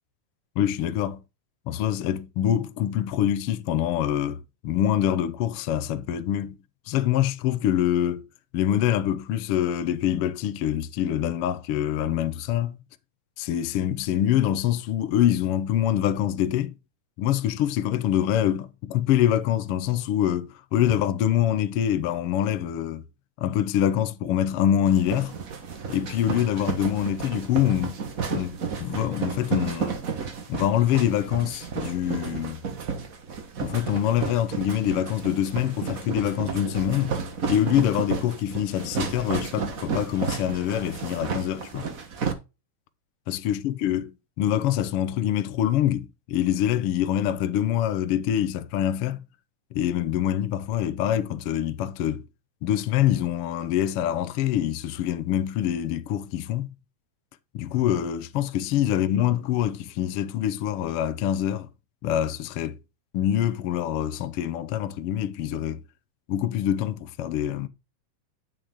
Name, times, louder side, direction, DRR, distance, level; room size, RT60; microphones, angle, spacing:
voice 1, 0.6-1.2 1.7-6.5 6.9-8.3 8.5-12.8 13.4-16.7 17.2-23.0 23.4-25.3 25.9-28.0 28.3-30.0 30.5-32.6 33.6-37.1 37.5-41.9 43.3-49.2 49.7-52.2 52.6-56.7 57.5-61.7 62.0-62.8 63.1-65.8 66.3-67.7, left 11 dB, 80° left, 1.3 m, -25 dB
sound 1, 24.9-42.3, right 5 dB, 85° right, 0.7 m, -32 dB
9.5 x 6.8 x 3.7 m
omnidirectional pair, 3.8 m